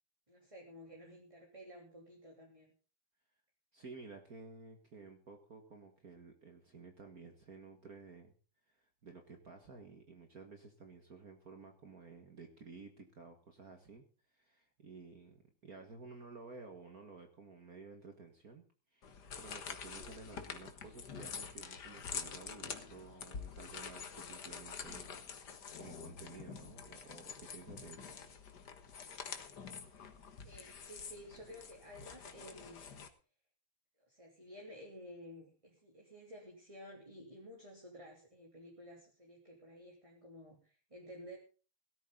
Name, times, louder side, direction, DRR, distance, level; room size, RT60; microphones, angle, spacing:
voice 1, 0.3-2.7 30.4-32.9 34.1-41.4, equal, 15° right, 0 dB, 3.2 m, -53 dB
voice 2, 3.7-8.3 8.7-14.0 14.3-18.7 18.9-28.2, right 4 dB, 45° right, 5 dB, 2.1 m, -53 dB
sound 1, 19.0-33.1, left 6 dB, 50° left, 2.0 m, -47 dB
18.0 x 13.0 x 3.9 m, 0.37 s
omnidirectional pair, 2.4 m